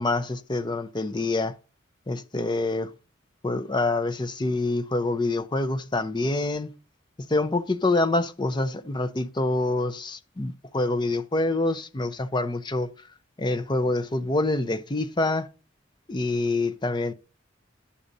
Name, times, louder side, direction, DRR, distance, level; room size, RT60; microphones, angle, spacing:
voice 1, 0.0-1.5 2.1-2.9 3.4-6.7 7.3-12.9 13.4-15.5 16.1-17.1, left 2 dB, 25° left, 0.6 m, -26 dB
10.0 x 6.7 x 3.8 m
head